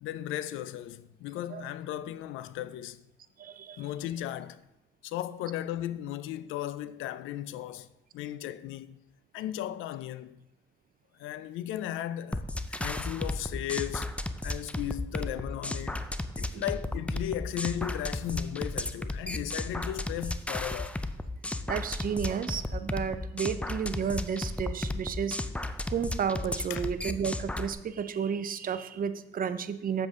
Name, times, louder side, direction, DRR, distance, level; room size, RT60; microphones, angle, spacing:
voice 1, 0.0-3.0 3.8-4.6 5.0-7.9 8.1-9.0 9.3-10.4 11.2-14.2 14.4-16.1 16.4-21.0 26.7-26.9, left 12 dB, 90° left, 0.4 m, -36 dB
voice 2, 3.4-3.8 16.5-16.6 21.7-25.4 25.9-30.1, right 7 dB, 45° right, 0.6 m, -32 dB
sound 1, 12.3-27.7, left 2 dB, 5° left, 0.4 m, -34 dB
7.8 x 7.3 x 3.6 m
cardioid pair, 90°, 20 cm